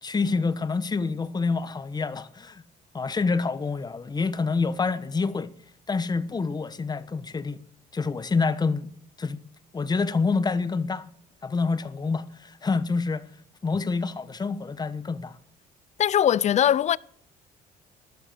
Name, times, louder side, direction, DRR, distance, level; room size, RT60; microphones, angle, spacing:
voice 1, 0.0-2.6 2.9-5.5 5.9-7.6 7.9-8.9 9.2-9.4 9.7-11.1 11.4-13.2 13.6-15.3, left 4 dB, 25° left, 1.1 m, -27 dB
voice 2, 16.0-17.0, left 10 dB, 45° left, 0.5 m, -20 dB
13.0 x 12.5 x 6.7 m
cardioid pair, 110°, 17 cm